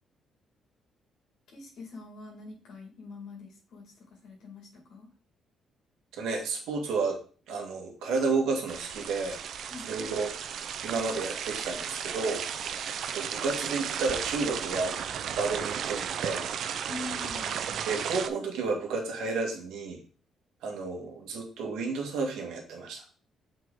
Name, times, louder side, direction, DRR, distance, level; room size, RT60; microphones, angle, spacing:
voice 1, 1.5-5.1 9.7-9.9 16.9-17.6, left 3 dB, 80° left, -1 dB, 2.1 m, -44 dB
voice 2, 6.2-7.2 7.5-9.4 9.8-12.5 13.1-15.0 15.3-16.5 17.9-20.0 20.6-23.0, right 4 dB, 90° right, 2 dB, 1.7 m, -31 dB
sound 1, 8.7-18.3, right 8 dB, 70° right, 0.6 m, -34 dB
6.1 x 4.8 x 3.9 m, 0.39 s
cardioid pair, 90°, 0 cm